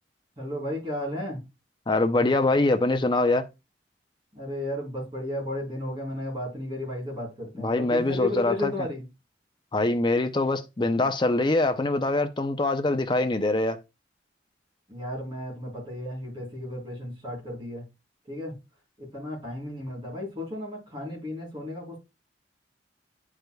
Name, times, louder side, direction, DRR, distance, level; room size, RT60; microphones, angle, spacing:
voice 1, 0.4-1.4 4.3-9.0 14.9-17.8 18.3-18.5 19.0-22.0, left 1 dB, 25° right, 3.9 m, -33 dB
voice 2, 1.9-3.5 7.6-8.7 9.7-13.8, left 2 dB, 25° left, 0.6 m, -24 dB
10.5 x 4.9 x 2.3 m
head